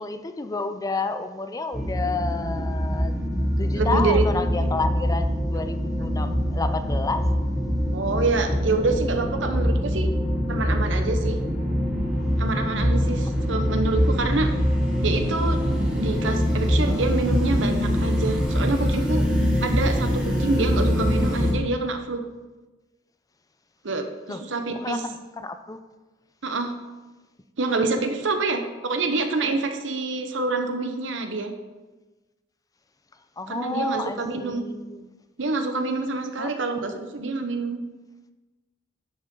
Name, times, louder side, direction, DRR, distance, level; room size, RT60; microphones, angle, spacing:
voice 1, 0.0-3.1 3.6-7.3 24.3-24.4 24.8-25.8 33.4-35.1 36.4-36.5, left 3 dB, 20° left, 9 dB, 0.5 m, -30 dB
sound 1, 1.7-21.5, equal, 5° right, 2.5 m, -24 dB
voice 2, 3.8-4.2 7.9-10.1 10.5-11.4 12.4-14.5 15.0-15.6 16.0-19.3 19.6-22.2 23.8-25.0 26.4-26.7 27.6-31.5 33.5-34.7 35.4-37.8, right 3 dB, 75° right, 6 dB, 1.0 m, -26 dB
10.0 x 7.5 x 3.8 m, 1.2 s
head